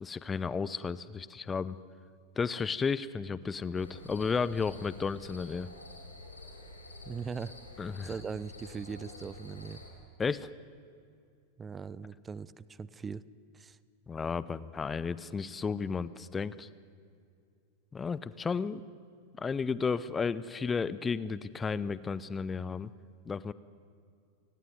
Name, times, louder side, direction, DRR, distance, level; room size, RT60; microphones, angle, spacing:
voice 1, 0.0-1.8 2.4-5.7 7.8-8.1 10.2-10.5 14.1-16.7 17.9-18.8 19.4-22.9 23.3-23.5, left 5 dB, 15° left, 18 dB, 0.7 m, -33 dB
sound 1, 3.7-9.9, left 2 dB, 80° left, 5.0 m, -49 dB
voice 2, 7.0-7.5 8.0-9.8 11.6-13.2 13.5-13.8, right 5 dB, 15° right, 19 dB, 0.8 m, -40 dB
30.0 x 20.0 x 9.5 m, 2.4 s
figure-of-eight pair, 90°, 0 cm